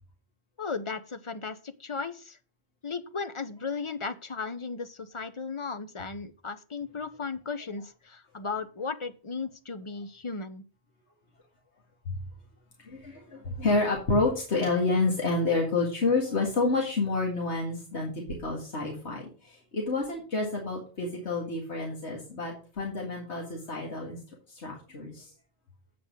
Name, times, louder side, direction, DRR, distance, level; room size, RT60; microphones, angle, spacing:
voice 1, 0.6-2.4 2.8-10.6, left 4 dB, 35° left, 11 dB, 0.6 m, -36 dB
voice 2, 12.8-24.2 24.5-25.3, left 3 dB, 90° left, -1 dB, 2.2 m, -29 dB
8.5 x 5.2 x 6.4 m, 0.38 s
omnidirectional pair, 1.1 m